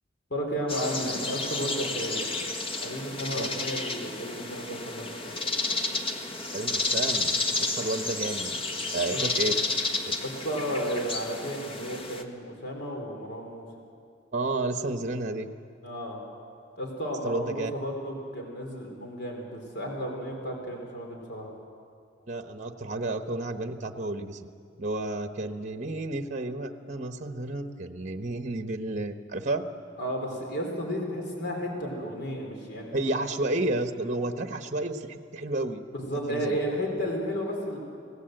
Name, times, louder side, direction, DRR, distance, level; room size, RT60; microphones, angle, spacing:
voice 1, 0.3-2.2 2.8-5.3 9.1-9.2 10.2-13.7 15.8-16.2 16.8-21.5 30.0-32.9 36.0-37.8, equal, 65° left, 1 dB, 3.8 m, -33 dB
sound 1, 0.7-12.2, left 3 dB, 30° left, 1.4 m, -31 dB
voice 2, 6.5-8.5 8.9-9.5 10.1-10.2 14.3-15.5 17.2-17.7 22.3-24.5 24.8-29.6 32.9-35.8 36.1-36.6, right 2 dB, 40° right, 7 dB, 1.0 m, -31 dB
26.5 x 17.5 x 7.8 m, 2.3 s
head